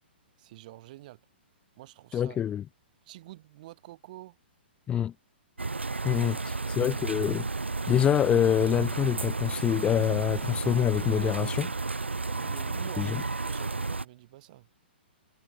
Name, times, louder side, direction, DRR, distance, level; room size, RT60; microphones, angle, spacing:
voice 1, 0.4-1.2 1.8-2.4 3.0-4.4 12.2-14.7, right 16 dB, 45° right, 5.9 m, -48 dB
voice 2, 2.1-2.6 4.9-5.1 6.0-7.5 7.9-11.7 13.0-13.2, left 10 dB, 15° left, 0.4 m, -26 dB
sound 1, 5.6-14.1, right 3 dB, 90° right, 0.8 m, -32 dB
figure-of-eight pair, 120°, 6 cm